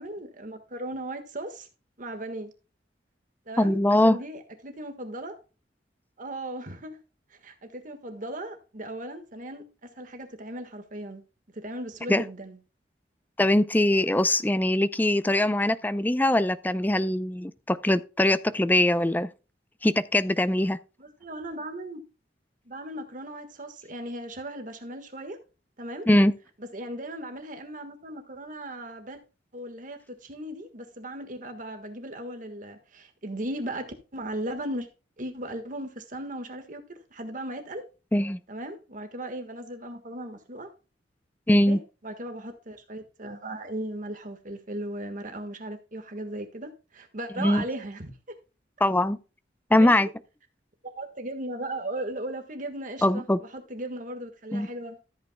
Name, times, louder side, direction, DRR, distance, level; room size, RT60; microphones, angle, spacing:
voice 1, 0.0-1.7 2.0-2.5 3.5-5.4 6.2-7.0 7.3-11.2 11.5-12.6 21.0-22.0 22.7-25.4 25.8-26.1 26.7-29.2 29.5-34.9 35.2-37.8 38.5-40.7 41.7-48.4 49.8-50.1 50.8-55.0, right 1 dB, 45° right, 1.5 m, -37 dB
voice 2, 3.6-4.2 12.1-12.2 13.4-19.3 19.8-20.8 26.1-26.3 38.1-38.4 41.5-41.8 47.4-47.6 48.8-49.2 49.7-50.1 53.0-53.4 54.5-54.7, left 1 dB, 10° left, 0.5 m, -22 dB
13.5 x 8.7 x 2.2 m
head